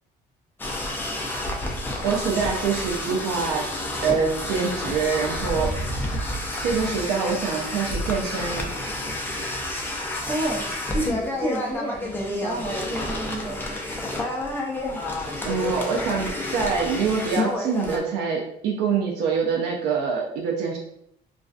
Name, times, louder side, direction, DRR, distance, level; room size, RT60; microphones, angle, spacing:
sound 1, 0.6-18.0, left 1 dB, 10° left, 0.5 m, -29 dB
voice 1, 2.0-3.7 4.0-6.0 6.6-8.7 15.4-20.8, right 5 dB, 75° right, 0 dB, 0.4 m, -25 dB
voice 2, 10.3-13.8, right 1 dB, 35° right, -3 dB, 0.8 m, -30 dB
2.3 x 2.3 x 2.4 m, 0.73 s
cardioid pair, 110°, 17 cm